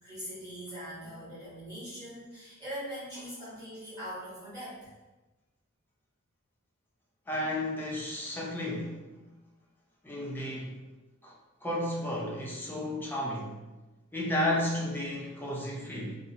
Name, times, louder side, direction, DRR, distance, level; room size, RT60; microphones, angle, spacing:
voice 1, 0.0-4.9, equal, 20° right, -11 dB, 1.4 m, -41 dB
voice 2, 7.3-9.0 10.0-10.7 11.2-11.3 11.6-13.6 14.1-16.2, left 1 dB, 10° left, -4 dB, 0.5 m, -32 dB
2.7 x 2.0 x 2.6 m, 1.1 s
head